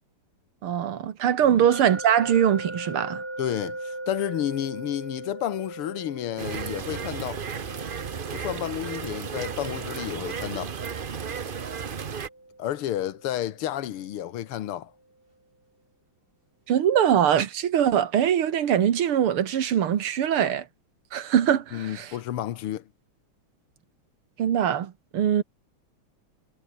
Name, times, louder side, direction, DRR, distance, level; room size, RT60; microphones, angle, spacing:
voice 1, 0.6-3.2 16.7-20.7 21.1-22.1 24.4-25.4, right 9 dB, 80° right, 2.4 m, -22 dB
sound 1, 1.7-14.6, right 2 dB, 25° right, 5.1 m, -41 dB
voice 2, 3.4-7.4 8.3-10.8 12.6-14.9 21.7-22.9, left 12 dB, 85° left, 2.0 m, -31 dB
sound 2, 6.4-12.3, right 6 dB, 50° right, 0.6 m, -34 dB
omnidirectional pair, 2.4 m